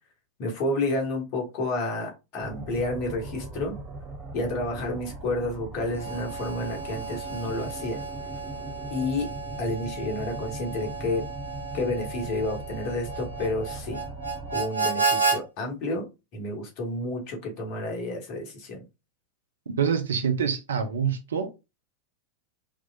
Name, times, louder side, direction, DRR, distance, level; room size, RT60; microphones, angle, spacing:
voice 1, 0.4-3.8 4.3-8.0 8.9-9.3 9.6-11.3 11.7-14.0 14.5-18.8, left 2 dB, 45° left, 1.3 m, -30 dB
sound 1, 2.4-14.6, right 2 dB, 25° right, 1.0 m, -40 dB
Harmonica, 5.9-15.4, right 4 dB, 85° left, 0.8 m, -32 dB
voice 2, 19.8-21.5, right 7 dB, 65° right, 0.7 m, -26 dB
3.6 x 3.0 x 2.4 m
figure-of-eight pair, 90°, 0 cm